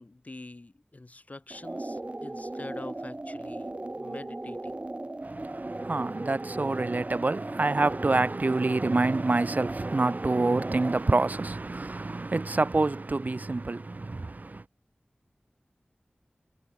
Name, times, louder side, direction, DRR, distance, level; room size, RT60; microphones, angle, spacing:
voice 1, 0.0-4.7, left 2 dB, 45° left, 1.9 m, -45 dB
sound 1, 1.5-11.1, right 2 dB, 35° right, 1.9 m, -37 dB
voice 2, 5.2-14.6, right 3 dB, 55° right, 0.8 m, -27 dB
wide cardioid pair, 60°, 3 cm